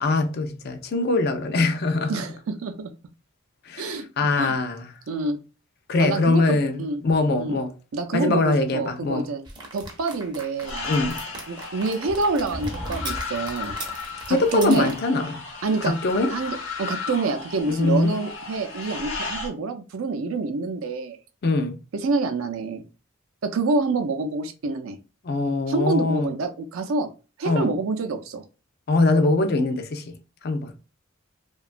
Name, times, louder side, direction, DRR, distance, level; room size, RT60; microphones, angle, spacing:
voice 1, 0.0-2.2 3.7-4.9 5.9-7.7 8.1-9.3 10.8-11.2 14.3-15.4 15.8-16.3 17.7-18.3 21.4-21.7 25.2-26.3 27.5-27.7 28.9-30.2 30.4-30.7, left 3 dB, 50° left, 0.4 m, -22 dB
voice 2, 2.1-2.9 3.8-4.0 4.4-4.6 5.1-5.4 6.0-7.0 7.4-7.6 7.9-9.4 9.7-10.9 11.5-13.8 14.3-14.9 15.6-16.0 16.3-21.2 21.9-22.8 23.4-25.0 25.7-27.1 27.4-28.4, right 3 dB, 85° right, 0.5 m, -27 dB
sound 1, 9.5-15.0, right 2 dB, 20° right, 0.5 m, -37 dB
sound 2, 10.6-19.5, left 4 dB, 75° left, 0.8 m, -35 dB
2.9 x 2.2 x 2.4 m
head